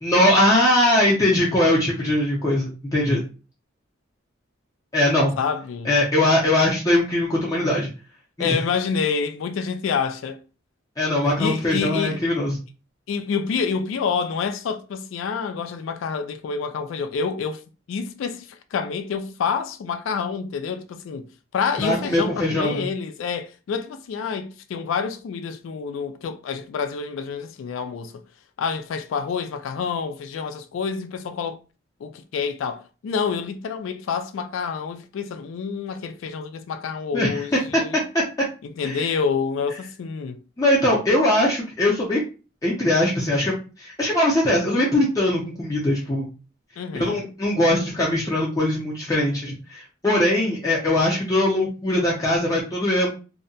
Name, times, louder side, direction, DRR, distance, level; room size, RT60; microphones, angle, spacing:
voice 1, 0.0-3.2 4.9-5.4 5.8-7.9 8.4-8.6 11.0-12.6 21.8-22.8 37.1-37.4 38.8-39.0 40.6-42.2 42.6-46.3 47.0-53.1, left 1 dB, 15° left, 0.5 m, -21 dB
voice 2, 5.4-5.9 8.4-10.4 11.4-12.2 13.1-17.6 17.9-21.3 21.5-28.2 28.6-31.6 32.0-38.0 38.6-40.4 46.8-47.3, left 6 dB, 75° left, 0.3 m, -28 dB
2.7 x 2.1 x 2.6 m
head